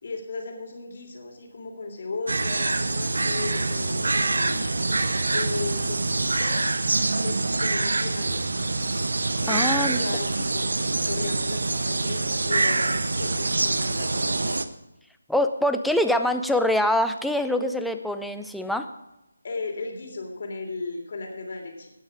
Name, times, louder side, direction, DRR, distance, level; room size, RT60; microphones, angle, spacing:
voice 1, 0.0-4.6 5.3-7.3 7.6-8.6 9.4-14.6 19.4-21.9, left 3 dB, 50° left, 2 dB, 3.2 m, -36 dB
sound 1, 2.3-14.6, right 3 dB, 65° right, 0.9 m, -25 dB
voice 2, 9.5-10.0 15.3-18.9, left 1 dB, ahead, 7 dB, 0.5 m, -24 dB
18.5 x 6.3 x 4.9 m, 0.92 s
figure-of-eight pair, 155°, 0 cm